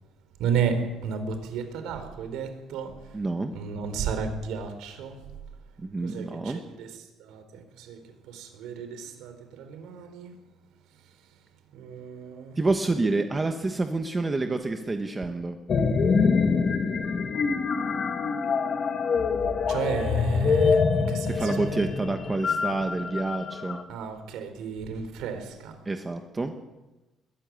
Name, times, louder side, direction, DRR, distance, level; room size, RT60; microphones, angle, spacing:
voice 1, 0.4-2.9 3.5-5.2 6.0-6.9 7.2-10.4 11.7-12.6 19.7-21.6 23.9-25.8, right 6 dB, 75° right, 3.9 m, -33 dB
voice 2, 3.1-3.5 5.8-6.6 12.6-15.6 21.3-23.8 25.8-26.5, right 3 dB, 15° right, 1.2 m, -28 dB
sound 1, 15.7-23.8, left 5 dB, 35° left, 1.5 m, -25 dB
21.5 x 13.5 x 9.5 m
cardioid pair, 170°, 0 cm